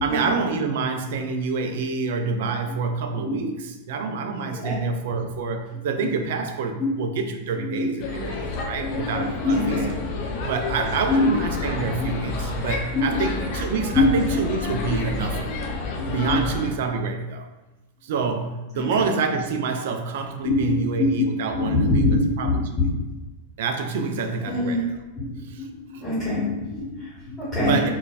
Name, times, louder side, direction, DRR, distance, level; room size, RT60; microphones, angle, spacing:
voice 1, 0.0-9.9 10.4-15.6 16.1-17.5 18.0-22.8 23.6-25.0 25.5-25.7 25.9-26.0 27.6-27.9, right 4 dB, 55° right, 6 dB, 0.3 m, -27 dB
sound 1, 8.0-16.7, left 3 dB, 45° left, 0.5 m, -30 dB
voice 2, 9.4-9.9 11.1-11.3 12.9-13.3 13.9-14.4 16.0-16.4 18.7-19.1 20.4-21.3 21.5-22.5 22.8-22.9 24.5-24.8 25.1-25.3 25.6-25.7 26.0-27.8, left 2 dB, 10° left, -11 dB, 1.0 m, -23 dB
3.8 x 2.2 x 2.3 m, 1.1 s
figure-of-eight pair, 90°, 0 cm